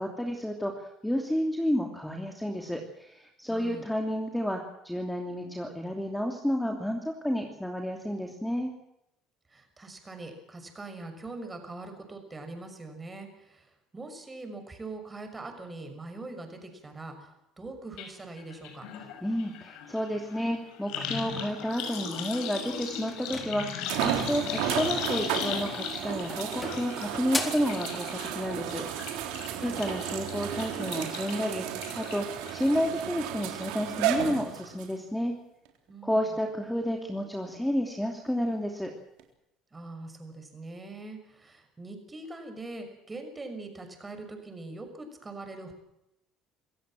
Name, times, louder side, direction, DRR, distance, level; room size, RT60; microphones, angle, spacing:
voice 1, 0.0-8.7 19.2-28.8 29.6-35.3 36.0-38.9, equal, 5° left, 3 dB, 2.9 m, -31 dB
voice 2, 3.5-3.8 9.5-17.3 17.6-18.8 29.5-29.8 35.9-36.3 39.7-45.7, right 2 dB, 20° right, 6 dB, 6.2 m, -42 dB
sound 1, 18.0-18.1 18.4-33.0 33.4-33.9 34.1-34.2, left 7 dB, 75° left, 6.0 m, -38 dB
sound 2, 22.8-22.9 23.9-34.9 35.7-35.8 39.2-39.3, right 10 dB, 85° right, 3.7 m, -33 dB
sound 3, 23.1-24.3 25.6-26.0 26.3-27.7, left 3 dB, 20° left, 4.1 m, -37 dB
26.5 x 16.0 x 7.7 m, 0.84 s
cardioid pair, 110°, 0 cm